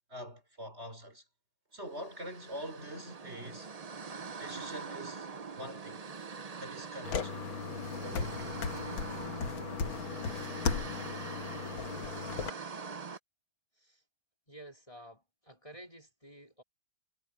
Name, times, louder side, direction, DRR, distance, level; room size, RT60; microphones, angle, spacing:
voice 1, 0.1-1.2 1.7-3.7 4.4-5.3 5.6-6.0 6.6-7.4 8.0-8.6, equal, 30° right, 5.4 m, -44 dB
sound 1, 1.9-13.2, right 5 dB, 80° right, 0.3 m, -44 dB
sound 2, 7.0-12.5, left 5 dB, 75° left, 2.2 m, -36 dB
voice 2, 14.5-16.6, right 1 dB, 15° left, 3.1 m, -52 dB
omnidirectional pair, 2.2 m